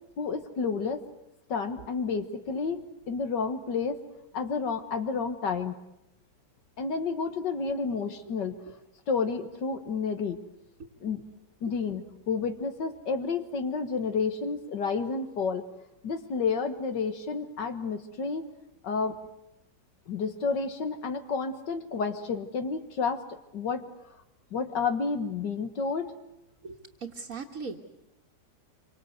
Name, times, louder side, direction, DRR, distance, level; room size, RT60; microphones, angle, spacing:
voice 1, 0.2-1.0 1.5-4.0 4.3-5.8 6.8-8.6 9.1-10.4 11.0-11.2 11.6-15.6 16.0-18.5 18.8-19.2 20.1-23.2 23.5-23.9 24.5-26.1, left 5 dB, 80° left, 7 dB, 2.1 m, -30 dB
voice 2, 26.6-27.8, right 4 dB, 50° right, -1 dB, 2.0 m, -39 dB
26.5 x 24.5 x 8.1 m, 0.85 s
omnidirectional pair, 1.9 m